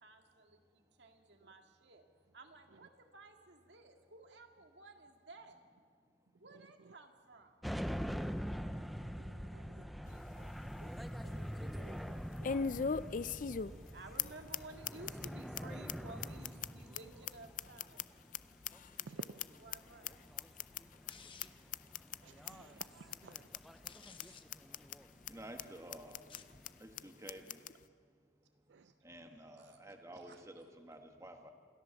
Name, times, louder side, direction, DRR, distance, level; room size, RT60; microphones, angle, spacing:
voice 1, 0.0-2.0 2.3-5.6 6.4-7.6 9.5-10.5 13.9-18.1 18.9-19.3 19.6-20.2 23.9-24.2 28.8-28.9 29.5-29.8 30.1-30.5, right 2 dB, 70° right, 2.0 m, -55 dB
sound 1, 7.6-26.8, equal, ahead, 0.5 m, -45 dB
voice 2, 8.7-9.9 10.8-10.9 11.2-13.1 13.6-13.9 19.0-19.2 22.2-23.5 28.7-28.8, right 4 dB, 85° right, 0.5 m, -57 dB
sound 2, 10.1-10.2 10.6-10.7 12.4-13.9 14.2-14.3 14.5-14.6 14.8-15.3 15.5-15.6 15.9-16.0 16.2-18.4 18.6-19.8 20.0-20.1 20.4-20.8 21.1-21.2 21.4-21.5 21.7-22.2 22.5-22.6 22.8-22.9 23.1-23.6 23.8-23.9 24.2-24.3 24.5-25.0 25.3-25.4 25.6-25.7 25.9-26.4 26.6-26.7 27.0-27.1 27.3-27.7, left 6 dB, 45° left, 0.4 m, -38 dB
sound 3, 21.1-21.7 23.6-24.4 26.2-26.6, left 6 dB, 30° left, 0.9 m, -56 dB
voice 3, 25.3-26.2 26.8-27.6 29.0-31.5, right 1 dB, 15° right, 1.5 m, -51 dB
27.5 x 14.0 x 7.1 m
head